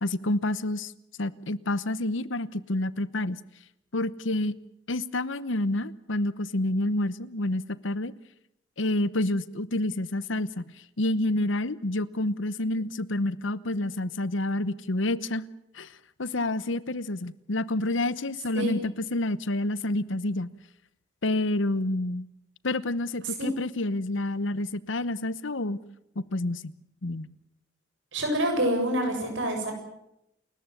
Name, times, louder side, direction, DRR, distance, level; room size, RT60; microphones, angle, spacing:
voice 1, 0.0-0.9 1.2-3.4 3.9-4.5 4.9-8.1 8.8-10.7 11.0-15.4 15.7-15.9 16.2-20.5 21.2-22.2 22.6-25.8 26.2-26.7 27.0-27.3, left 1 dB, 80° left, 17 dB, 1.0 m, -28 dB
voice 2, 28.1-29.7, right 1 dB, 75° right, 3 dB, 7.7 m, -26 dB
29.0 x 14.0 x 9.2 m, 0.82 s
head